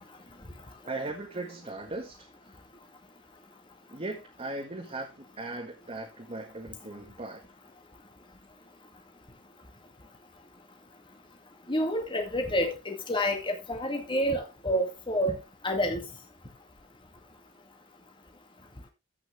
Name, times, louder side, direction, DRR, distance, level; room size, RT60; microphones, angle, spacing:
voice 1, 0.8-2.3 3.9-7.5, right 2 dB, 30° right, 1.8 m, -38 dB
voice 2, 11.7-15.4 15.6-16.0, equal, 25° left, 2.2 m, -28 dB
15.0 x 6.2 x 3.3 m
head